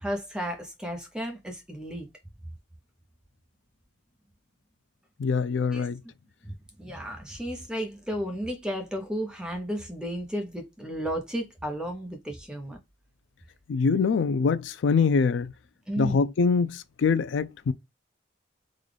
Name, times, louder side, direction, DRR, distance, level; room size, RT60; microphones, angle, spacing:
voice 1, 0.0-2.1 5.7-5.9 6.4-6.5 6.8-12.8 15.9-16.2, equal, 5° right, 0.7 m, -33 dB
voice 2, 5.2-6.0 13.7-15.5 16.0-17.7, left 5 dB, 85° left, 0.4 m, -24 dB
3.8 x 2.3 x 3.2 m
head